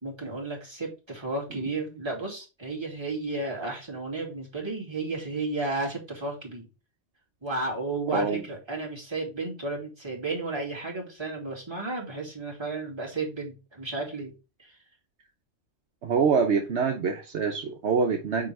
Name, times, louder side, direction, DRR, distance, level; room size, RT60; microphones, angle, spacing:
voice 1, 0.0-6.7 7.4-14.3 14.6-14.8, right 3 dB, 20° right, 2.5 m, -33 dB
voice 2, 8.1-8.4 16.0-18.5, right 5 dB, 70° right, 1.1 m, -25 dB
6.2 x 4.8 x 3.3 m
omnidirectional pair, 1.2 m